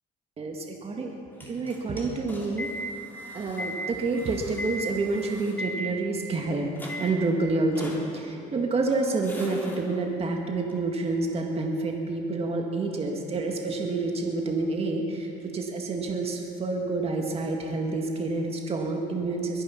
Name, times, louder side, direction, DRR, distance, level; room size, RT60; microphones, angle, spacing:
voice 1, 0.4-2.7 3.3-6.7 7.0-19.6, right 3 dB, 35° right, 2 dB, 1.9 m, -28 dB
sound 1, 1.3-6.4 6.7-7.3 7.7-8.5 8.9-9.8 10.7-10.8, equal, 10° left, 3.4 m, -38 dB
22.0 x 10.5 x 5.9 m, 2.6 s
cardioid pair, 110°, 17 cm